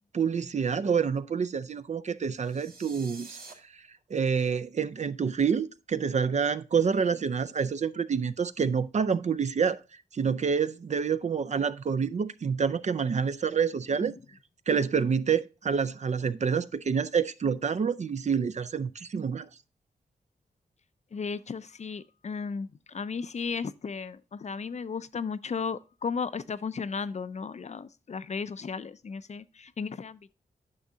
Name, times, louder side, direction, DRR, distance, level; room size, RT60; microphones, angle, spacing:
voice 1, 0.1-3.4 3.7-3.8 4.1-9.8 10.1-14.1 14.7-19.5, right 6 dB, 45° right, 0.4 m, -27 dB
sound 1, 2.3-3.5, right 4 dB, 65° right, 2.0 m, -47 dB
voice 2, 21.1-30.2, left 5 dB, 45° left, 0.4 m, -35 dB
9.6 x 6.1 x 2.7 m
cardioid pair, 70°, 17 cm